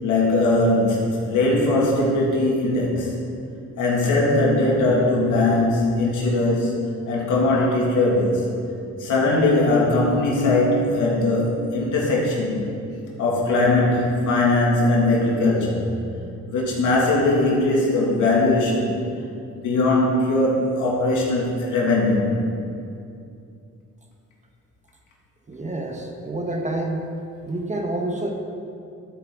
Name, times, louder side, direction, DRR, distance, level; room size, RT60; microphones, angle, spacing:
voice 1, 0.0-3.1 3.8-6.7 7.1-8.5 9.0-12.6 13.2-15.9 16.5-18.9 19.6-22.3, left 2 dB, 85° left, -3 dB, 2.6 m, -20 dB
voice 2, 25.5-27.1 27.4-28.3, right 2 dB, 25° right, 2 dB, 1.4 m, -28 dB
12.5 x 8.6 x 4.0 m, 2.5 s
cardioid pair, 90°, 30 cm